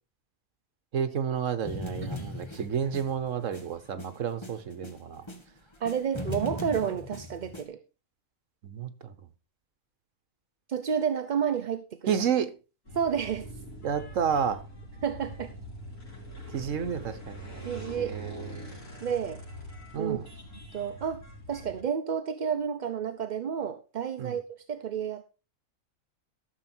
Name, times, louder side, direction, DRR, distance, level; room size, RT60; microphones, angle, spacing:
voice 1, 0.9-5.2 8.6-9.1 12.1-12.5 13.8-14.6 16.5-17.5 18.0-18.8 19.9-20.2 24.2-24.4, right 7 dB, 70° right, 1.4 m, -31 dB
sound 1, 1.6-5.4 5.7-7.6, left 2 dB, 20° left, 1.6 m, -39 dB
voice 2, 5.8-7.8 10.7-12.2 12.9-13.5 15.0-15.5 17.6-18.2 19.0-19.4 20.0-20.2 20.7-21.2 21.5-25.2, right 7 dB, 50° right, 0.6 m, -30 dB
sound 2, 12.9-21.8, equal, 70° left, 5.1 m, -43 dB
13.0 x 6.6 x 4.4 m
omnidirectional pair, 1.4 m